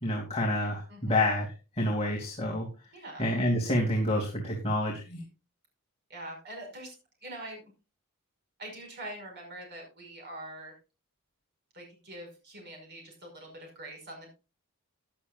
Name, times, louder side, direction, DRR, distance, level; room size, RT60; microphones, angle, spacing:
voice 1, 0.0-1.5 1.8-2.7 3.2-5.2, left 1 dB, 30° left, -1 dB, 2.6 m, -28 dB
voice 2, 2.9-3.3 6.1-7.0 7.2-7.6 8.6-10.8 11.7-14.3, right 1 dB, 50° right, 2 dB, 5.5 m, -44 dB
15.0 x 11.0 x 2.5 m, 0.30 s
head